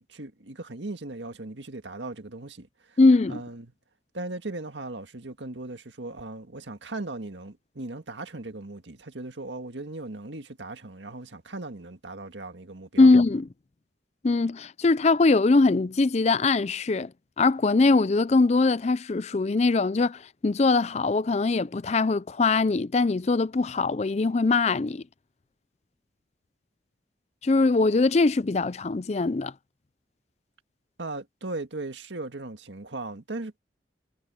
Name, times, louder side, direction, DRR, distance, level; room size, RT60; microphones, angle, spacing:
voice 1, 0.0-3.0 3.3-3.7 4.1-13.1 31.0-33.6, right 2 dB, 80° right, 1.8 m, -38 dB
voice 2, 3.0-3.4 13.0-13.5 14.2-17.1 17.4-25.0 27.4-29.5, left 3 dB, 35° left, 0.5 m, -22 dB
head